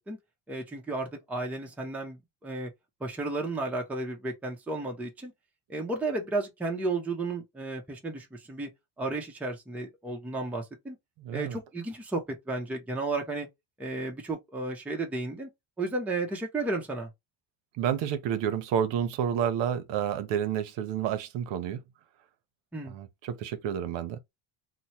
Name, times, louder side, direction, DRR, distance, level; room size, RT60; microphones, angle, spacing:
voice 1, 0.5-2.7 3.0-5.3 5.7-8.7 9.0-11.0 11.3-13.5 13.8-15.5 15.8-17.1 22.7-23.0, right 2 dB, 5° right, 0.5 m, -33 dB
voice 2, 11.2-11.6 17.8-21.8 22.9-24.2, right 9 dB, 65° right, 0.7 m, -30 dB
3.0 x 2.1 x 4.1 m
cardioid pair, 155°, 46 cm